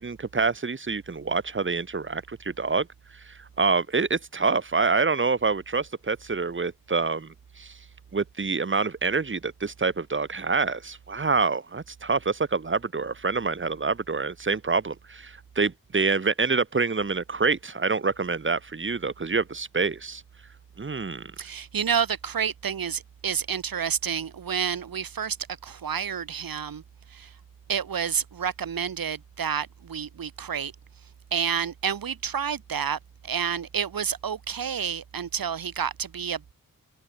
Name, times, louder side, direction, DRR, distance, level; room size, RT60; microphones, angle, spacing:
voice 1, 0.0-2.9 3.3-7.8 8.1-20.2 20.8-21.3, right 4 dB, 35° right, 1.9 m, -26 dB
voice 2, 21.4-25.4 25.6-26.8 27.1-27.3 27.7-30.7 31.3-36.5, right 7 dB, 80° right, 3.1 m, -29 dB
wide cardioid pair, 140°, 34 cm